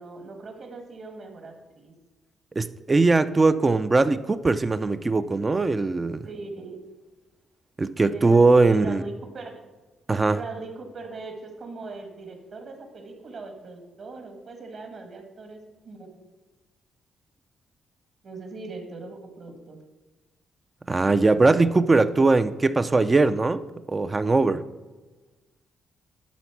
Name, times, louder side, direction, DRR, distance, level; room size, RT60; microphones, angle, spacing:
voice 1, 0.0-1.9 6.2-6.8 8.1-9.6 10.4-15.6 15.8-16.2 18.2-19.8, right 3 dB, 50° right, 1.8 m, -40 dB
voice 2, 2.6-6.3 7.8-9.0 10.1-10.4 20.9-23.6 23.9-24.6, right 3 dB, 25° right, 0.4 m, -20 dB
11.5 x 4.0 x 5.9 m
cardioid pair, 90°, 0 cm